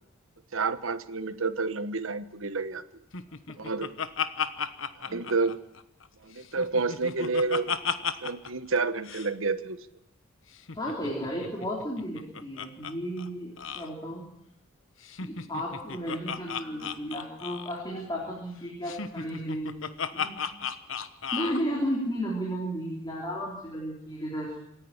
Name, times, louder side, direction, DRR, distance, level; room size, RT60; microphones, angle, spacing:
voice 1, 0.5-2.8 3.6-3.9 5.1-5.6 6.2-7.8 8.2-9.8, right 4 dB, 65° right, 12 dB, 1.2 m, -29 dB
Laughter, 3.1-6.1 6.4-8.5 8.8-8.9 9.0-9.3 10.5-12.9 13.2-13.3 13.6-13.9 15.0-17.8 18.8-21.6, left 6 dB, 65° left, 1.2 m, -34 dB
voice 2, 10.8-14.2 15.2-19.8 20.1-20.4 21.3-24.6, equal, 20° left, -2 dB, 3.8 m, -33 dB
27.0 x 10.5 x 10.0 m, 0.81 s
head